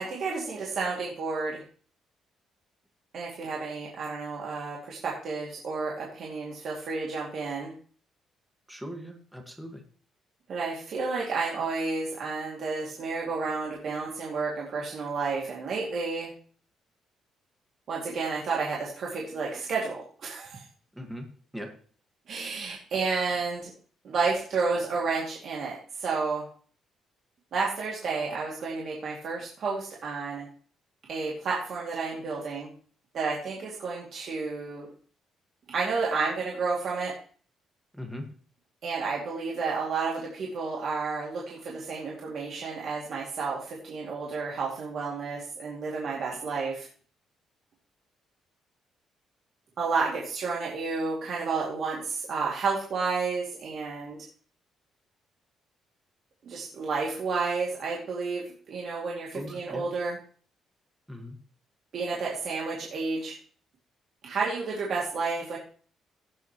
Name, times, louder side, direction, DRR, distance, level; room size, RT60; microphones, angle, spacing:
voice 1, 0.0-1.6 3.1-7.7 10.5-16.3 17.9-20.6 22.3-23.7 24.0-26.4 27.5-30.5 31.1-32.7 33.1-34.9 35.7-37.1 38.8-46.9 49.8-54.2 56.5-60.2 61.9-63.3 64.2-65.6, right 4 dB, 50° right, -3 dB, 2.3 m, -31 dB
voice 2, 8.7-9.8 20.9-21.3 21.5-21.7 37.9-38.3 59.3-59.8 61.1-61.4, equal, 5° right, 3 dB, 1.6 m, -39 dB
16.0 x 8.0 x 3.0 m, 0.44 s
cardioid pair, 165°, 0 cm